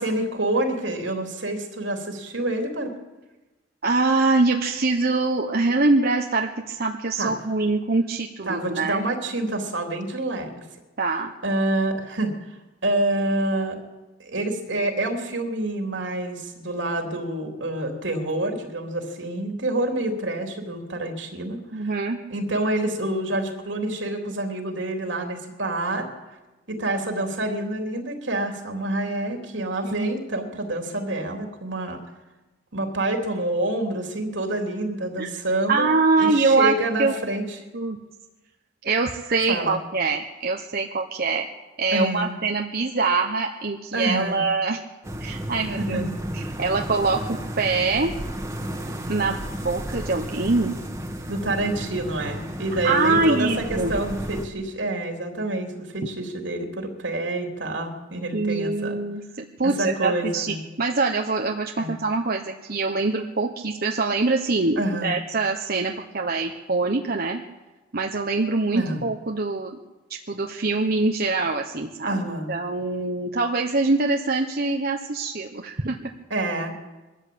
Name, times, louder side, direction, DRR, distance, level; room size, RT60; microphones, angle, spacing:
voice 1, 0.0-2.9 7.2-7.3 8.4-10.6 11.4-12.3 12.8-13.8 14.2-21.9 22.3-26.1 26.7-32.0 32.7-35.9 36.2-37.6 39.5-39.7 41.9-42.3 43.9-44.4 45.8-46.2 51.3-59.0 59.6-60.6 61.8-61.9 64.8-65.1 68.7-69.0 72.1-72.5 76.3-76.7, right 1 dB, 80° right, 3 dB, 3.4 m, -27 dB
voice 2, 3.8-9.0 11.0-11.3 21.7-22.2 29.8-30.1 35.2-35.3 35.7-36.7 37.0-37.1 37.7-38.0 38.8-41.5 41.8-44.8 45.2-46.0 46.3-48.1 49.1-50.8 52.8-54.0 58.3-67.4 67.9-69.8 70.3-76.1, right 3 dB, 55° right, 2 dB, 1.2 m, -24 dB
sound 1, 45.0-54.4, equal, 15° right, 1.8 m, -33 dB
22.0 x 13.5 x 8.8 m, 1.1 s
head